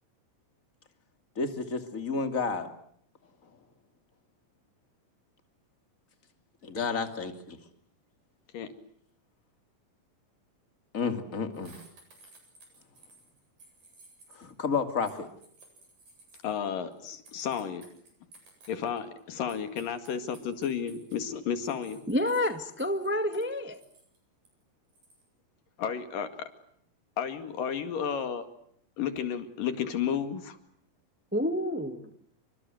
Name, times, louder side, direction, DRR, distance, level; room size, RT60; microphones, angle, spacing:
voice 1, 1.4-2.7 6.6-7.6 10.9-11.8 14.3-15.3, left 5 dB, 25° left, 7 dB, 2.6 m, -31 dB
sound 1, 11.5-14.5 15.0-19.2 19.5-21.2 21.6-23.5 23.7-24.2 24.4-24.5 24.9-25.2, right 2 dB, 75° right, 9.8 m, -56 dB
voice 2, 16.4-17.8 18.7-22.0 25.8-26.5 27.2-28.5 29.0-30.6, left 8 dB, 75° left, 9 dB, 3.8 m, -32 dB
voice 3, 22.1-23.8 31.3-32.1, left 1 dB, 15° right, 8 dB, 0.4 m, -29 dB
29.5 x 24.5 x 7.9 m, 0.67 s
omnidirectional pair, 3.9 m